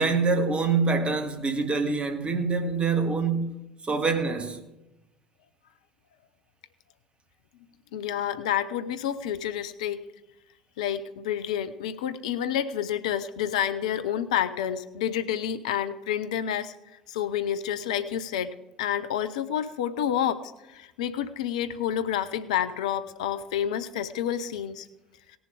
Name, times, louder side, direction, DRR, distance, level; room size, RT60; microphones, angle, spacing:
voice 1, 0.0-3.6 3.8-4.6, right 4 dB, 25° right, 2.0 m, -25 dB
voice 2, 7.9-10.1 10.8-16.7 17.1-24.9, left 10 dB, 65° left, 0.7 m, -29 dB
18.5 x 7.1 x 4.9 m
figure-of-eight pair, 60°, 4 cm